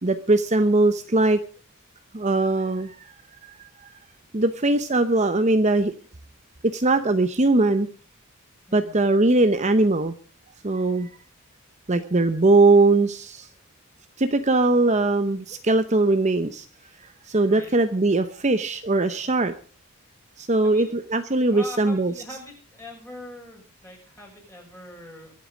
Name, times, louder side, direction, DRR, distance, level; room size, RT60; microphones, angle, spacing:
voice 1, 0.0-1.4 2.1-3.1 3.4-3.9 4.3-5.9 6.6-7.9 8.7-10.1 10.6-11.1 11.9-13.5 14.2-16.6 17.2-19.5 20.4-22.1, right 2 dB, 30° right, 10 dB, 0.8 m, -20 dB
voice 2, 8.7-9.0 17.5-17.7 20.6-21.0 21.5-25.3, left 1 dB, 10° left, 0 dB, 6.5 m, -42 dB
23.0 x 8.6 x 5.1 m, 0.41 s
head